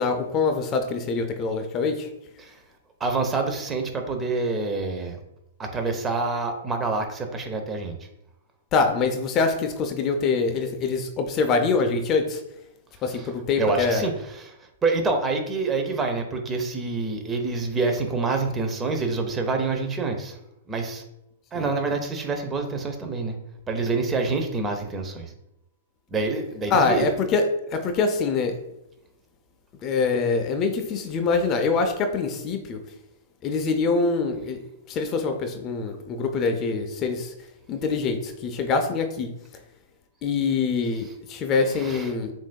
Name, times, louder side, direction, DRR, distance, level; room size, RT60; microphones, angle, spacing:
voice 1, 0.0-2.1 8.7-12.4 13.0-14.1 21.5-21.7 26.7-28.6 29.8-32.8 33.4-34.6 34.9-37.3 37.7-39.3 40.2-42.3, left 4 dB, 30° left, 5 dB, 0.5 m, -24 dB
voice 2, 3.0-5.2 5.6-8.1 13.1-13.3 13.6-14.6 14.8-20.4 20.7-21.0 21.5-23.4 23.7-25.3 26.1-27.1 40.9-41.1 41.7-42.1, right 3 dB, 20° right, 4 dB, 0.8 m, -27 dB
7.1 x 2.6 x 2.3 m, 0.85 s
hypercardioid pair, 120°, 0 cm